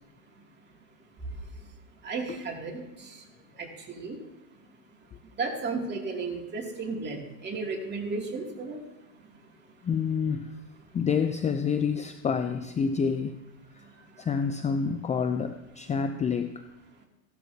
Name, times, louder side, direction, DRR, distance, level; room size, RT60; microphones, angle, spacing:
voice 1, 2.0-2.8 3.9-4.2 5.4-8.8, right 4 dB, 25° right, 0 dB, 2.8 m, -33 dB
voice 2, 9.8-10.6 10.9-13.4 14.2-16.5, left 6 dB, 20° left, 8 dB, 0.5 m, -28 dB
16.0 x 12.5 x 2.9 m, 1.0 s
supercardioid pair, 115°, 39 cm